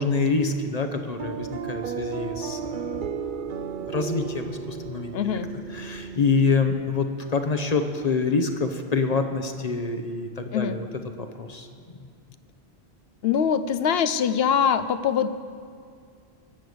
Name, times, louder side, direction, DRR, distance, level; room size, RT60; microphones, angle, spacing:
voice 1, 0.0-3.0 3.9-5.1 5.7-10.9 11.2-11.7, left 4 dB, 40° left, 6 dB, 0.9 m, -26 dB
sound 1, 1.2-6.5, right 6 dB, 55° right, 0.7 m, -33 dB
voice 2, 5.1-5.5 10.5-10.8 13.2-15.3, left 7 dB, 70° left, 12 dB, 0.8 m, -23 dB
19.0 x 6.8 x 7.9 m, 2.2 s
omnidirectional pair, 1.1 m